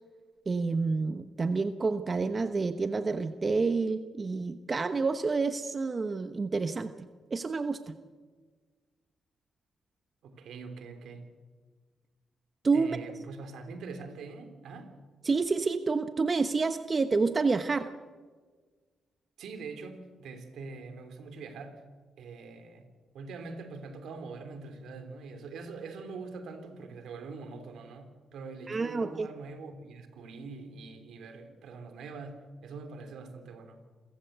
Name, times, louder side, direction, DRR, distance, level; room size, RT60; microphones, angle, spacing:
voice 1, 0.5-6.9 7.3-7.9 12.6-13.0 15.2-17.9 28.7-29.3, right 4 dB, 40° right, 9 dB, 1.1 m, -28 dB
voice 2, 10.2-11.3 12.7-15.0 19.4-21.8 22.2-22.9 23.1-33.8, right 4 dB, 80° right, 7 dB, 3.3 m, -43 dB
27.5 x 15.0 x 8.1 m, 1.5 s
cardioid pair, 65°, 0 cm